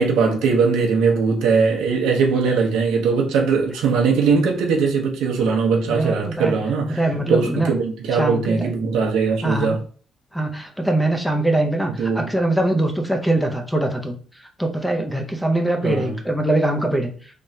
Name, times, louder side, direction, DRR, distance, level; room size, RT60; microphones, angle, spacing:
voice 1, 0.0-7.0 7.3-9.8 12.0-12.3 15.8-16.1, right 5 dB, 85° right, 0.9 m, -20 dB
voice 2, 5.9-6.6 7.0-7.7 8.2-8.7 9.4-9.8 10.3-14.2 14.6-17.1, right 1 dB, ahead, 0.7 m, -22 dB
3.4 x 3.1 x 2.8 m
cardioid pair, 95°, 0 cm